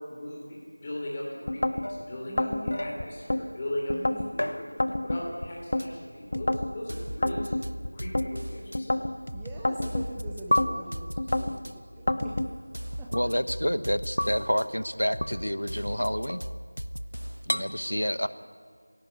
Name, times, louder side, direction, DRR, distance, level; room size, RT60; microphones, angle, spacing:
voice 1, 0.1-4.0 4.3-4.6 5.0-7.5 7.9-9.0, left 1 dB, 15° left, -3 dB, 3.3 m, -37 dB
sound 1, 1.5-1.9 2.4-3.4 3.9-4.3 4.8-5.9 6.3-6.7 7.2-8.3 8.7-9.2 9.6-10.7 11.2-11.6 12.1-12.5, left 1 dB, 40° left, 0.9 m, -28 dB
sound 2, 1.8-3.3 4.4-5.3 5.6-6.0 6.9-7.0 7.9-8.0 9.6-9.7 10.5-11.0 12.1-12.2 13.1-13.3 14.2-14.5 15.2-15.3 16.3-16.7 17.5-17.6, left 1 dB, 65° left, 1.3 m, -32 dB
voice 2, 2.2-3.0 3.9-4.3 9.3-12.6 13.0-13.3 17.5-18.2, right 2 dB, 5° right, -5 dB, 0.6 m, -45 dB
sound 3, 5.8-5.9 6.3-8.8 9.3-11.7 12.2-14.7 15.1-17.5, equal, 90° right, 0.9 m, -38 dB
voice 3, 13.1-16.4 17.5-18.3, equal, 90° left, 14 dB, 1.0 m, -28 dB
21.0 x 17.0 x 8.5 m, 2.1 s
figure-of-eight pair, 175°, 0 cm